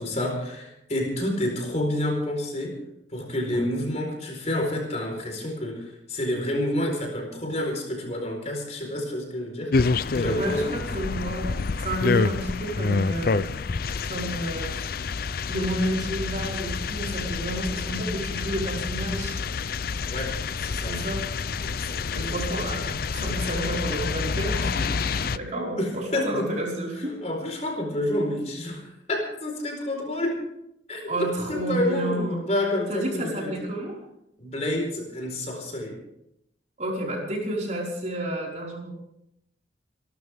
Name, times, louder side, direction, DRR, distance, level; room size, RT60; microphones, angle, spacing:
voice 1, 0.0-2.8 3.1-10.7 14.8-14.9 20.1-21.0 21.6-22.3 25.8-26.6 26.9-30.4 30.9-33.7 34.4-36.0, left 1 dB, 35° left, 1 dB, 4.4 m, -29 dB
sound 1, 9.7-25.4, left 4 dB, 50° left, 0.5 m, -28 dB
voice 2, 10.2-14.8 15.5-19.3 20.8-21.2 22.1-27.1 31.1-32.3 32.9-34.0 36.8-38.9, right 1 dB, 40° right, -2 dB, 5.1 m, -31 dB
27.5 x 13.0 x 3.6 m, 0.79 s
head